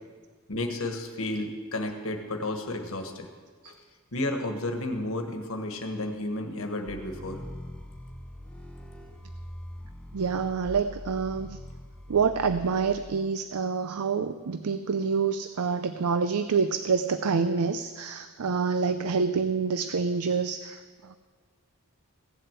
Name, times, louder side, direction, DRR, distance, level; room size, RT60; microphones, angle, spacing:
voice 1, 0.5-3.3 3.6-3.7 4.1-7.4, left 1 dB, 65° left, 5 dB, 1.4 m, -32 dB
sound 1, 6.9-13.0, equal, 5° left, 1.2 m, -43 dB
voice 2, 10.1-11.6 12.1-21.2, right 5 dB, 80° right, 11 dB, 0.5 m, -27 dB
16.0 x 7.7 x 7.9 m, 1.5 s
head